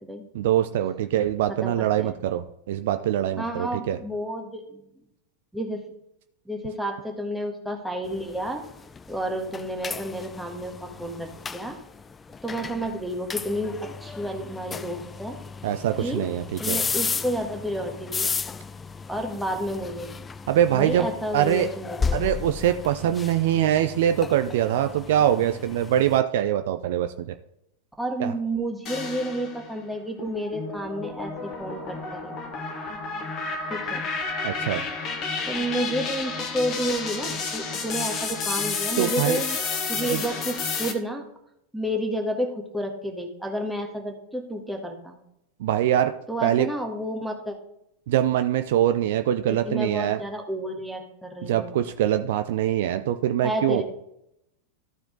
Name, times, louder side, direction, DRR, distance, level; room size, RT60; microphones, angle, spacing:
voice 1, 0.3-4.0 15.6-16.8 20.5-21.7 22.1-27.3 28.2-28.3 34.4-34.8 39.0-39.4 40.1-40.2 45.6-46.1 46.4-46.7 48.1-50.2 51.4-53.8, right 11 dB, 55° right, 9 dB, 0.5 m, -23 dB
voice 2, 1.5-2.2 3.4-4.8 5.5-5.9 6.4-8.6 9.1-11.8 12.4-15.3 16.0-16.3 16.6-18.3 19.1-20.1 20.7-22.5 28.0-32.4 33.7-34.0 35.5-39.6 39.9-41.2 41.7-45.2 46.3-47.6 49.5-51.7 53.4-53.8, equal, 5° right, 2 dB, 1.6 m, -31 dB
sound 1, 8.1-26.2, left 5 dB, 15° left, 0.3 m, -34 dB
sound 2, 28.9-29.7 30.2-40.9, left 4 dB, 35° left, 1.4 m, -31 dB
13.5 x 4.6 x 3.8 m, 0.79 s
figure-of-eight pair, 90°, 0 cm